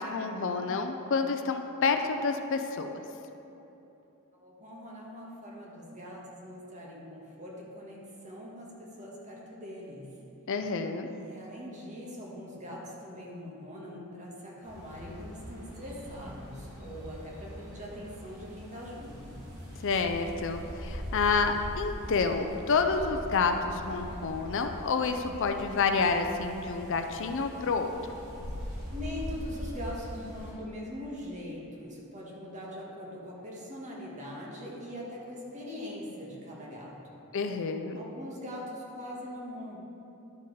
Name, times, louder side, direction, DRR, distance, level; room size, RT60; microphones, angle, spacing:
voice 1, 0.0-3.0 10.5-11.1 19.8-27.9 37.3-38.0, left 4 dB, 60° left, 6 dB, 0.5 m, -29 dB
voice 2, 4.3-10.2 11.0-19.4 28.9-37.2 37.9-39.8, equal, 35° right, -4 dB, 1.5 m, -42 dB
sound 1, 14.6-30.5, equal, 70° right, 2.0 m, -42 dB
11.5 x 4.6 x 4.7 m, 3.0 s
head